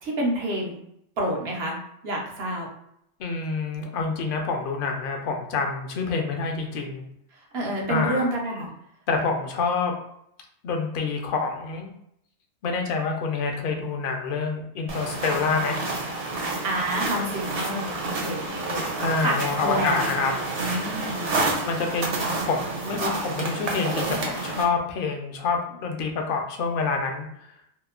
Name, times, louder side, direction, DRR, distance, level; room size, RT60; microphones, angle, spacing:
voice 1, 0.0-0.8 1.2-1.8 2.0-2.7 7.5-8.7 16.6-18.9 19.2-20.1 20.6-21.3, right 1 dB, 70° right, -2 dB, 0.9 m, -28 dB
voice 2, 3.2-7.0 7.9-8.3 9.1-9.9 10.6-11.9 12.6-15.8 19.0-20.3 21.6-27.3, left 4 dB, 60° left, 2 dB, 0.6 m, -27 dB
sound 1, 14.9-24.6, right 2 dB, 45° right, 0.5 m, -29 dB
2.8 x 2.0 x 2.3 m, 0.75 s
omnidirectional pair, 1.1 m